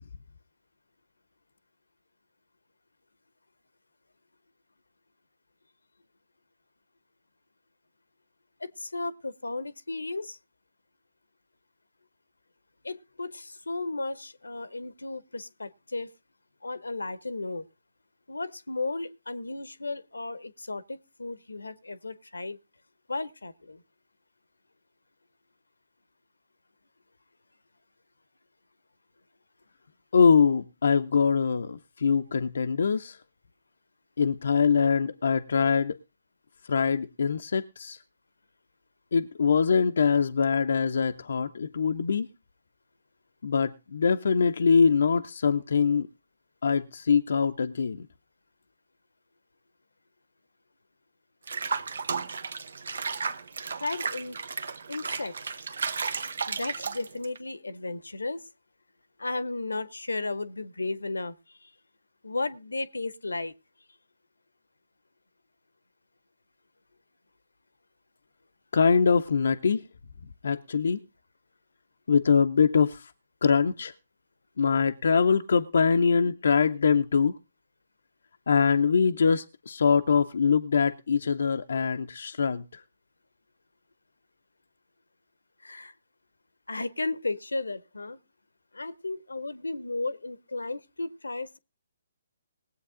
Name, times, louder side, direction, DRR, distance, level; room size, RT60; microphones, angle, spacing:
voice 1, 8.6-10.4 12.8-16.1 16.6-17.6 18.3-22.6 23.1-23.8 53.8-54.4 54.9-55.3 56.5-58.5 59.2-61.7 62.2-63.5 85.6-85.9 86.7-88.2 88.7-91.6, left 3 dB, 85° left, 1.0 m, -34 dB
voice 2, 30.1-33.2 34.2-36.0 36.7-38.0 39.1-42.3 43.4-46.1 46.6-48.1 68.7-69.9 70.4-71.0 72.1-73.1 73.4-73.9 74.6-77.4 78.5-82.8, left 6 dB, 65° left, 0.6 m, -23 dB
Water / Bathtub (filling or washing), 51.5-57.4, right 5 dB, 70° right, 1.1 m, -33 dB
19.5 x 8.1 x 3.7 m
figure-of-eight pair, 140°, 0 cm